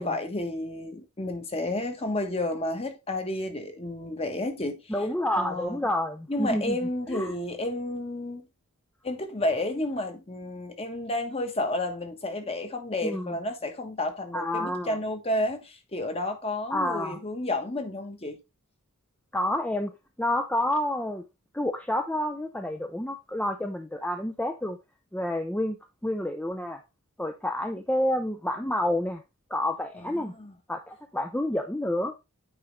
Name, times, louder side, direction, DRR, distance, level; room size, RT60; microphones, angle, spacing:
voice 1, 0.0-4.9 5.4-5.8 6.3-8.5 9.0-18.4 30.0-30.6, left 1 dB, 25° left, 1.2 m, -31 dB
voice 2, 4.9-6.8 7.1-7.3 13.0-13.3 14.3-15.0 16.7-17.2 19.3-19.9 20.2-21.2 21.5-24.8 25.1-25.8 26.0-26.8 27.2-29.2 29.5-30.3 30.7-32.1, left 1 dB, 5° left, 0.5 m, -29 dB
8.7 x 5.0 x 3.2 m
head